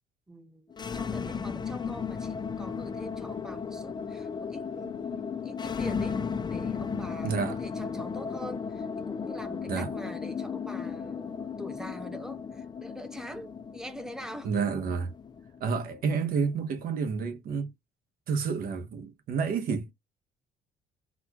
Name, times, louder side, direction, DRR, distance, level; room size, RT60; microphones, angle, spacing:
voice 1, 0.3-0.7 0.9-14.8, equal, 5° right, 0.9 m, -44 dB
sound 1, 0.7-16.8, left 6 dB, 25° left, 0.4 m, -35 dB
voice 2, 7.2-7.6 9.7-9.9 14.4-15.1 15.6-17.7 18.3-19.9, right 5 dB, 60° right, 1.0 m, -29 dB
4.2 x 2.3 x 2.8 m
cardioid pair, 110°, 17 cm